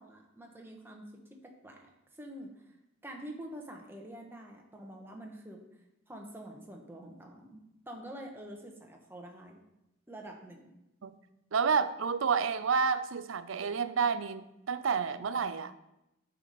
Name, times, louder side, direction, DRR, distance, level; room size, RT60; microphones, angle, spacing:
voice 1, 0.0-1.8 2.2-2.7 3.0-5.7 6.1-9.6 10.1-10.7, right 1 dB, 10° right, 1 dB, 1.3 m, -47 dB
voice 2, 11.5-15.7, right 5 dB, 85° right, 13 dB, 0.5 m, -30 dB
10.5 x 5.8 x 4.3 m, 0.90 s
head